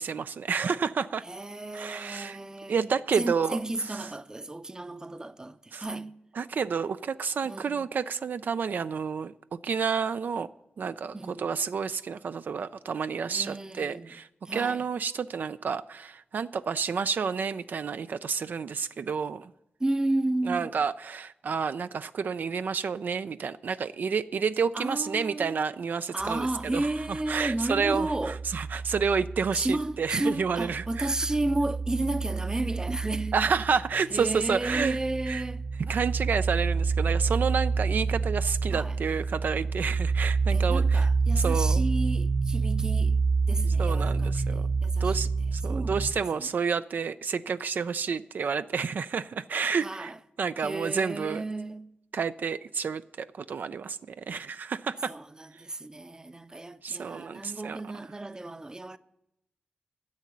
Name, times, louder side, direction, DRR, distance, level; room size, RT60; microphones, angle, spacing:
voice 1, 0.0-1.2 1.7-2.4 2.7-3.6 3.9-4.0 5.7-5.9 6.3-10.5 10.8-19.5 20.5-31.2 33.3-35.0 35.3-35.4 35.8-41.1 41.4-41.8 43.8-44.7 45.0-50.1 50.4-51.4 52.1-55.1 56.8-57.8, right 6 dB, 65° right, 0.3 m, -30 dB
voice 2, 1.3-2.8 3.1-6.1 7.4-7.9 11.1-11.5 13.3-14.1 14.4-14.8 19.8-20.7 24.7-25.6 26.1-28.4 29.5-33.3 34.1-35.6 38.7-39.0 40.5-43.2 43.5-45.2 45.7-46.0 46.4-46.5 49.8-50.2 50.6-51.9 55.1-59.0, right 2 dB, 20° right, 0.6 m, -32 dB
sound 1, 26.2-30.0 30.3-46.1, right 4 dB, 40° right, 1.2 m, -28 dB
10.5 x 7.3 x 9.2 m
cardioid pair, 60°, 3 cm